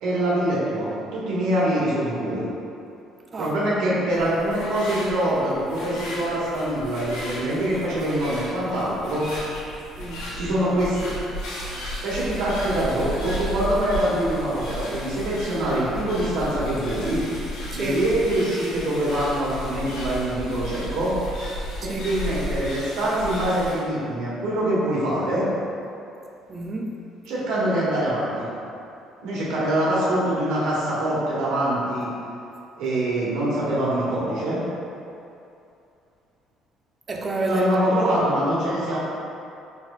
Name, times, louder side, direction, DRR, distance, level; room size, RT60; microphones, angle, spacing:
voice 1, 0.0-2.4 3.4-9.2 10.3-11.1 12.0-17.2 17.7-21.1 21.8-25.5 27.3-28.5 29.2-32.1 32.8-34.6 37.4-39.0, right 1 dB, 85° right, -7 dB, 1.3 m, -24 dB
sound 1, 4.1-23.8, equal, 90° left, 1.3 m, -34 dB
voice 2, 10.0-10.3 17.7-18.0 21.8-22.2 26.5-26.9 37.1-38.3, right 2 dB, 25° right, 0 dB, 0.4 m, -29 dB
4.2 x 4.2 x 2.4 m, 2.7 s
cardioid pair, 145°, 0 cm